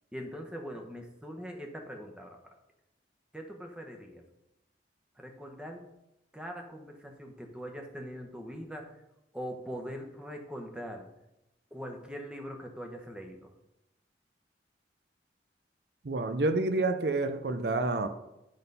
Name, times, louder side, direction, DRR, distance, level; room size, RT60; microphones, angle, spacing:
voice 1, 0.1-2.4 3.3-4.2 5.2-5.9 6.3-8.9 9.3-11.1 11.7-13.5, equal, 5° right, 2 dB, 1.0 m, -42 dB
voice 2, 16.0-18.1, right 2 dB, 65° right, 8 dB, 0.6 m, -28 dB
10.0 x 4.0 x 5.4 m, 0.89 s
head